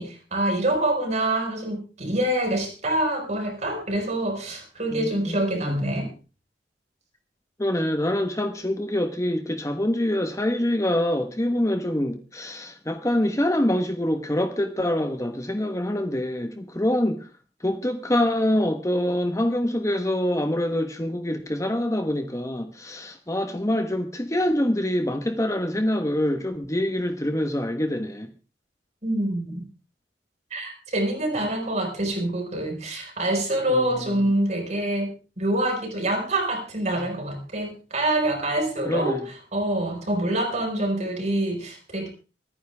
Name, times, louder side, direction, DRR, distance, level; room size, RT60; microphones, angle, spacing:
voice 1, 0.0-6.1 29.0-29.6 30.5-42.1, right 1 dB, 40° right, 3 dB, 5.3 m, -26 dB
voice 2, 4.9-5.4 5.7-5.8 7.6-17.3 17.6-28.3 33.7-34.0 38.8-39.2, left 1 dB, 20° left, 7 dB, 1.2 m, -25 dB
25.0 x 9.9 x 3.5 m, 0.33 s
head